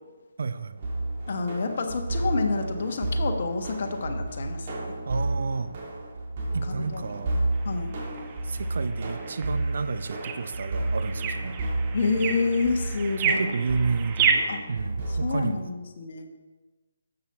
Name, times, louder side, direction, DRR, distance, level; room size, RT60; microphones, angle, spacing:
voice 1, 0.4-0.8 5.1-5.7 6.5-7.4 8.4-11.6 13.2-15.7, right 4 dB, 60° right, 10 dB, 0.8 m, -31 dB
sound 1, 0.8-15.5, right 2 dB, 40° right, 3.1 m, -31 dB
voice 2, 1.3-4.7 6.8-7.0 7.6-7.9 11.9-13.5 14.5-14.6 15.2-16.3, left 4 dB, 50° left, 4 dB, 1.5 m, -28 dB
sound 2, 7.5-14.6, right 6 dB, 20° right, 1.0 m, -31 dB
12.5 x 8.1 x 4.3 m, 1.3 s
figure-of-eight pair, 145°, 0 cm